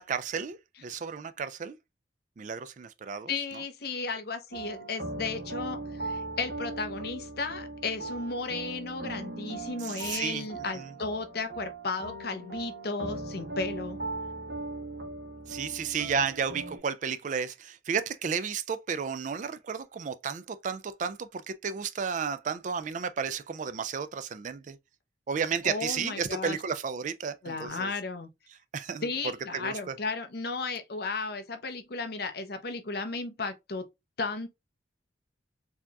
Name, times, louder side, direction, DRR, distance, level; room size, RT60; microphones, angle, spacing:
voice 1, 0.0-1.8 2.4-3.6 9.8-10.5 10.7-10.9 15.5-24.8 25.3-27.9 28.7-29.1 29.5-29.9, right 6 dB, 40° right, 0.3 m, -33 dB
voice 2, 3.3-14.0 25.6-26.6 27.4-28.3 29.0-33.9 34.2-34.5, left 4 dB, 55° left, 0.7 m, -34 dB
sound 1, 4.5-16.8, right 2 dB, 60° right, 1.0 m, -39 dB
4.4 x 2.8 x 2.3 m
head